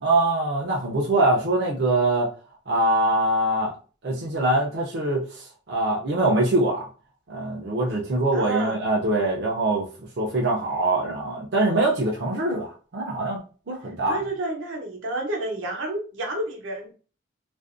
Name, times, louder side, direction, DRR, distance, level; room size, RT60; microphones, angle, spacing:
voice 1, 0.0-2.3 2.7-3.7 4.0-6.8 7.3-9.9 10.2-13.4 13.7-14.2, right 2 dB, 55° right, -2 dB, 0.5 m, -23 dB
voice 2, 8.3-8.8 14.1-16.9, right 2 dB, 90° right, -1 dB, 0.8 m, -30 dB
2.5 x 2.0 x 2.4 m, 0.37 s
head